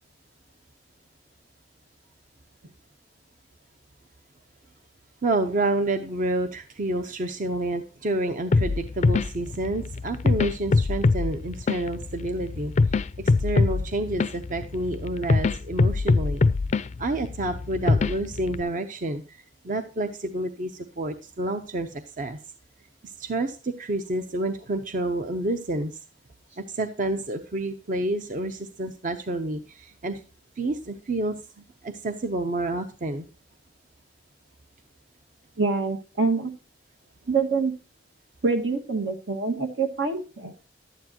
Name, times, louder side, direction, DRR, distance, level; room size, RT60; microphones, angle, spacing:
voice 1, 5.2-16.4 17.0-22.4 23.0-26.0 26.6-30.2 30.6-33.3, right 2 dB, 45° right, 8 dB, 0.7 m, -29 dB
sound 1, 8.5-18.6, left 3 dB, 40° left, 0.4 m, -24 dB
voice 2, 35.6-36.5 37.3-37.7 38.4-40.5, right 4 dB, 85° right, 4 dB, 1.7 m, -25 dB
11.5 x 9.4 x 2.9 m, 0.33 s
head